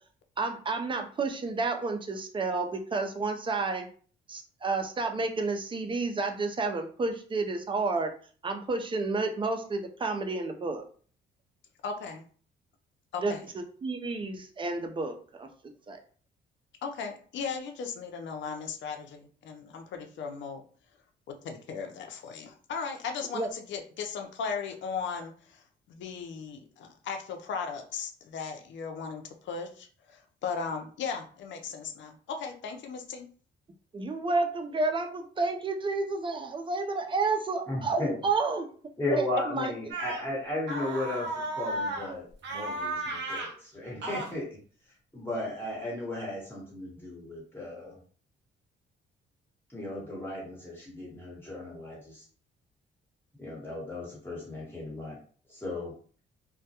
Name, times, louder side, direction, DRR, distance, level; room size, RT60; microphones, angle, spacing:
voice 1, 0.4-3.9 4.3-8.1 8.4-10.9 13.2-15.5 15.9-16.0 23.3-23.5 33.9-38.7 39.2-39.7, right 3 dB, 25° right, 4 dB, 0.4 m, -30 dB
voice 2, 11.8-12.3 13.1-13.4 16.8-20.6 21.3-25.6 25.9-33.3 39.3-39.4, left 5 dB, 70° left, 5 dB, 0.5 m, -37 dB
voice 3, 37.7-38.2 39.0-44.6 45.1-48.0 49.7-52.2 53.4-55.2 55.5-55.9, left 1 dB, 10° left, -5 dB, 1.2 m, -35 dB
sound 1, 39.9-40.3 40.7-42.1 42.4-43.5 44.0-44.3, right 1 dB, 65° right, 0.7 m, -34 dB
2.2 x 2.1 x 2.8 m, 0.43 s
cardioid pair, 90°, 20 cm